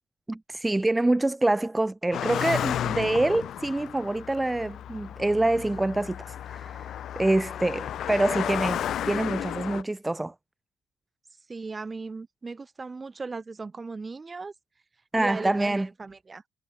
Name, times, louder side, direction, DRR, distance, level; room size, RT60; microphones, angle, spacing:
voice 1, 0.3-10.3 15.1-15.9, right 2 dB, 15° right, 0.3 m, -26 dB
Car passing by, 2.1-9.8, left 10 dB, 70° left, 0.4 m, -33 dB
voice 2, 11.5-14.5 15.2-16.4, right 4 dB, 30° right, 6.0 m, -37 dB
cardioid pair, 90°, 0 cm